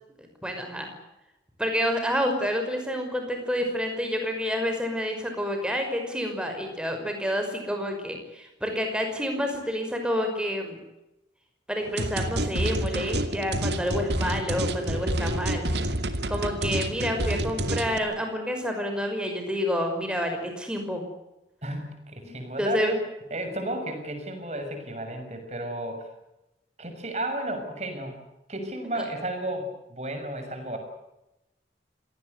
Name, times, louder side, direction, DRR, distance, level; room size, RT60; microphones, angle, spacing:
voice 1, 0.4-0.9 1.6-10.8 11.7-15.7 16.3-21.0 22.2-22.3 22.6-22.9, equal, 5° right, 4 dB, 5.7 m, -29 dB
sound 1, 12.0-18.0, right 1 dB, 75° right, 2.4 m, -28 dB
voice 2, 21.6-23.0 23.3-26.1 26.8-28.2 28.5-30.8, right 1 dB, 40° right, 6 dB, 6.7 m, -33 dB
27.0 x 19.0 x 8.2 m, 0.94 s
head